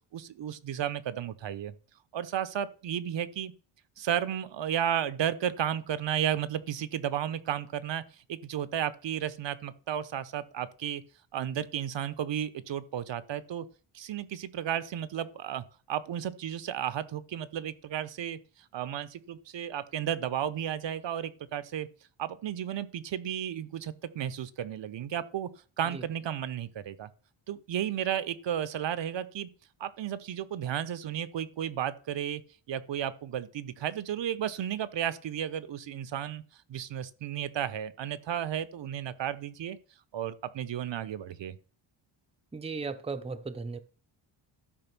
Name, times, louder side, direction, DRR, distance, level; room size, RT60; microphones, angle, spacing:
voice 1, 0.1-1.8 2.1-3.5 4.0-8.0 8.3-11.0 11.3-13.7 13.9-18.4 18.7-21.9 22.2-25.5 25.8-27.1 27.5-29.5 29.8-32.4 32.7-36.4 36.7-39.8 40.1-41.6, right 10 dB, 60° right, 1.0 m, -33 dB
voice 2, 42.5-43.8, right 4 dB, 10° right, 0.8 m, -36 dB
12.5 x 4.9 x 6.0 m
cardioid pair, 90°, 50 cm